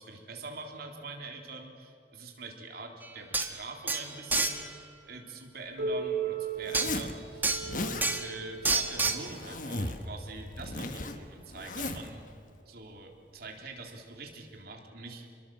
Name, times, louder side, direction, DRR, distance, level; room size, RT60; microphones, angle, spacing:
voice 1, 0.0-12.3 12.7-15.3, right 3 dB, 60° right, 2 dB, 3.6 m, -44 dB
sound 1, 3.0-3.1 3.3-3.5 3.9-4.6 6.7-6.9 7.4-7.7 8.0-8.3 8.6-9.2, right 3 dB, 10° right, 1.5 m, -28 dB
Piano, 5.8-11.1 12.0-12.1 12.6-12.7 13.4-13.5 14.6-14.7, right 6 dB, 85° right, 7.5 m, -38 dB
Zipper (clothing), 6.6-7.1 7.5-8.1 8.9-10.1 10.3-12.1, left 2 dB, 50° left, 1.5 m, -36 dB
28.0 x 22.0 x 7.7 m, 2.5 s
head